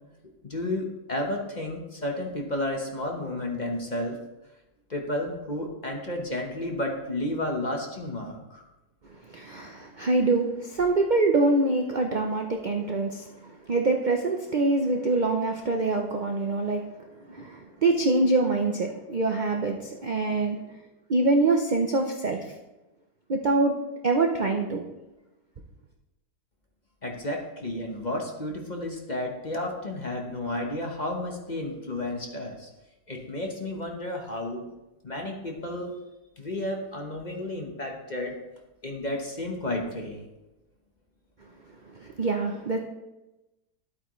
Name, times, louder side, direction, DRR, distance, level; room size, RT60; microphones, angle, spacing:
voice 1, 0.4-4.2 4.9-8.6 27.0-32.7 33.1-34.7 35.0-35.9 36.4-38.4 38.8-40.2, left 1 dB, 30° left, 1 dB, 1.1 m, -32 dB
voice 2, 9.3-16.8 17.3-20.6 21.1-22.4 23.3-23.7 24.0-24.8 41.9-42.8, right 3 dB, 45° right, 2 dB, 0.6 m, -25 dB
11.5 x 8.5 x 3.1 m, 1.0 s
omnidirectional pair, 1.7 m